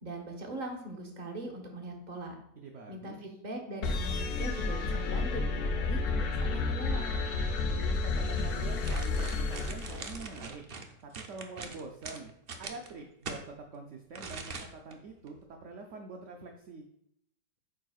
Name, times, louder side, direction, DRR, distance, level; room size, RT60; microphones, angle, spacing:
voice 1, 0.0-2.3 2.9-7.1, right 2 dB, 30° right, 1 dB, 1.0 m, -41 dB
voice 2, 2.6-3.3 7.7-10.6 11.0-12.3 12.6-16.9, right 3 dB, 60° right, 3 dB, 0.8 m, -45 dB
sound 1, 3.8-10.4, left 3 dB, 65° left, 1.1 m, -31 dB
sound 2, 8.8-13.4 14.1-14.9 15.3-15.4, right 4 dB, 80° right, 0.5 m, -42 dB
8.9 x 6.3 x 2.4 m, 0.72 s
omnidirectional pair, 1.9 m